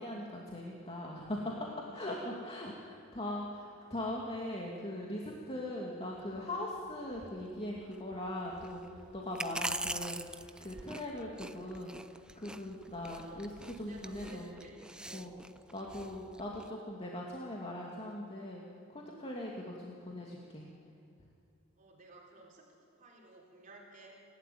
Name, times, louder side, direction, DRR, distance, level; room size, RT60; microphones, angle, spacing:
voice 1, 0.0-11.9 12.4-14.5 15.1-15.3 15.7-18.6 18.9-20.7, left 1 dB, 30° left, -2 dB, 2.5 m, -40 dB
sound 1, 6.2-16.7, right 1 dB, 5° right, 0.6 m, -44 dB
voice 2, 12.8-13.5 13.9-15.5 21.7-24.2, right 2 dB, 40° right, -2 dB, 4.0 m, -56 dB
30.0 x 12.5 x 9.4 m, 2.5 s
head